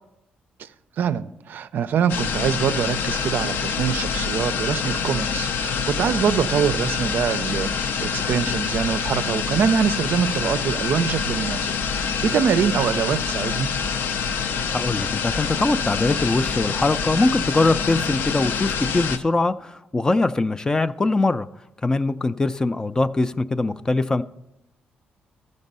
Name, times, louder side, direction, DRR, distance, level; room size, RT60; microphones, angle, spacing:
voice 1, 1.0-11.7 11.9-13.7, right 7 dB, 65° right, 0.4 m, -24 dB
sound 1, 2.1-19.2, left 6 dB, 85° left, 0.6 m, -26 dB
voice 2, 14.7-21.5 21.8-24.2, left 2 dB, 20° left, 0.3 m, -22 dB
13.5 x 5.3 x 5.4 m
cardioid pair, 110°, 4 cm